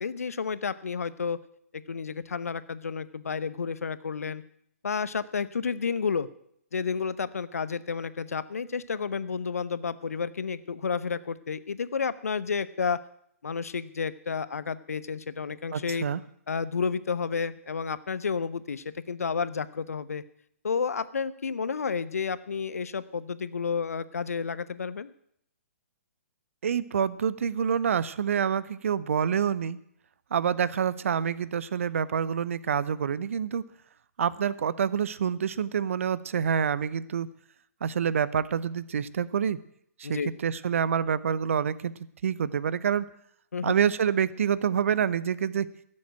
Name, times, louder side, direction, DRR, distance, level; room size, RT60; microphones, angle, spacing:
voice 1, 0.0-1.4 1.7-4.4 4.8-6.3 6.7-13.0 13.4-16.0 16.5-20.2 20.6-25.1 40.0-40.3 43.5-43.7, left 5 dB, 70° left, 15 dB, 0.8 m, -31 dB
voice 2, 15.7-16.2 26.6-29.8 30.3-33.6 34.2-37.3 37.8-39.6 40.0-41.9 42.2-43.1 43.6-45.7, right 7 dB, 60° right, 19 dB, 0.7 m, -27 dB
14.5 x 7.7 x 9.0 m, 0.70 s
figure-of-eight pair, 125°, 8 cm